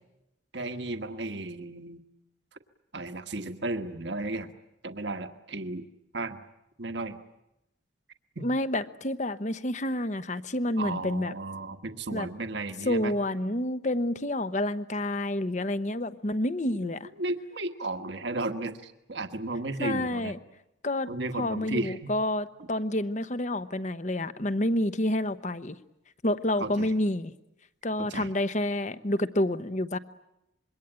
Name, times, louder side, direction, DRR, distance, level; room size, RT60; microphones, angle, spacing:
voice 1, 0.5-2.0 2.9-4.5 4.8-5.8 6.1-6.4 6.8-7.2 8.4-8.5 10.8-13.1 17.2-20.4 21.1-22.1 26.6-26.9 28.0-28.3, right 2 dB, 65° right, 7 dB, 1.4 m, -34 dB
voice 2, 8.4-11.3 12.1-12.3 12.8-17.1 19.8-20.4 20.8-21.1 21.4-25.8 26.2-27.3 27.8-30.0, left 1 dB, 40° left, 13 dB, 1.0 m, -29 dB
26.5 x 22.5 x 9.0 m, 0.88 s
head